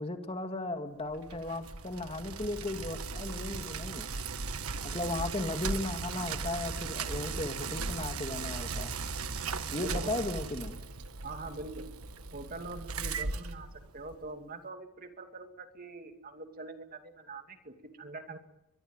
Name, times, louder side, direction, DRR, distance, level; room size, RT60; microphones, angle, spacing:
voice 1, 0.0-4.1 4.8-9.0 9.7-10.8, left 2 dB, 25° left, 6 dB, 2.2 m, -36 dB
Bicycle, 1.1-14.2, right 4 dB, 90° right, 1.5 m, -37 dB
voice 2, 9.8-10.2 11.2-11.9 12.3-18.4, right 3 dB, 40° right, 6 dB, 2.6 m, -44 dB
23.5 x 23.5 x 9.0 m, 0.85 s
head